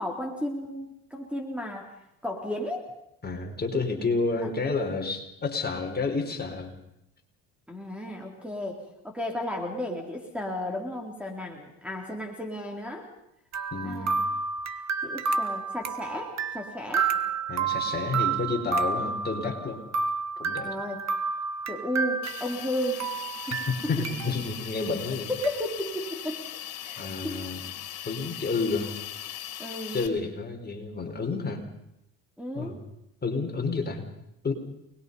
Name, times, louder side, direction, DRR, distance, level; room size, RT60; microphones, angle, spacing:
voice 1, 0.0-1.9 2.2-2.9 4.4-4.5 7.7-13.0 13.8-14.2 15.0-17.1 20.6-21.2 21.7-23.1 24.0-24.1 25.3-26.4 26.8-27.4 29.6-30.0 32.4-32.8, left 1 dB, 5° right, 2 dB, 3.8 m, -33 dB
voice 2, 3.2-6.7 13.7-14.2 17.5-19.8 20.4-20.7 23.5-25.3 27.0-27.6 28.0-28.9 29.9-31.6 32.5-32.8 33.2-34.1 34.4-34.5, left 4 dB, 25° left, 3 dB, 4.8 m, -30 dB
sound 1, 13.5-22.8 23.0-24.5 24.8-24.9 25.4-25.5, right 5 dB, 40° right, 2.1 m, -30 dB
Hiss, 22.2-30.1, left 11 dB, 55° left, 3.7 m, -39 dB
29.5 x 21.0 x 5.6 m, 0.81 s
supercardioid pair, 95°, 40 cm